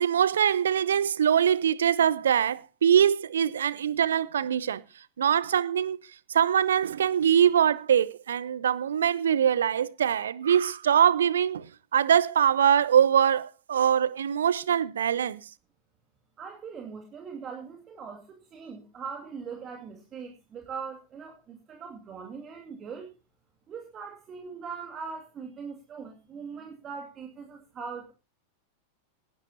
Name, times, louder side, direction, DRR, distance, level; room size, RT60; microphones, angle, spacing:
voice 1, 0.0-4.8 5.2-6.0 6.3-11.7 11.9-15.4, right 9 dB, 65° right, 0.7 m, -23 dB
voice 2, 16.4-23.1 23.7-28.1, right 5 dB, 25° right, 2.3 m, -41 dB
18.5 x 11.0 x 2.8 m
figure-of-eight pair, 90°, 0 cm